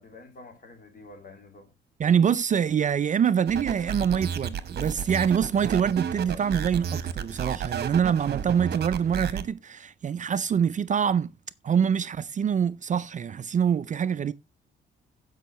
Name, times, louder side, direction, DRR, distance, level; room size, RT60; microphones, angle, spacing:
voice 1, 0.0-1.7, left 2 dB, 45° left, 2.9 m, -48 dB
voice 2, 2.0-11.3 11.6-14.3, right 7 dB, 40° right, 0.4 m, -25 dB
sound 1, 3.5-9.4, right 8 dB, 55° right, 1.0 m, -32 dB
15.0 x 5.5 x 3.1 m
cardioid pair, 90°, 20 cm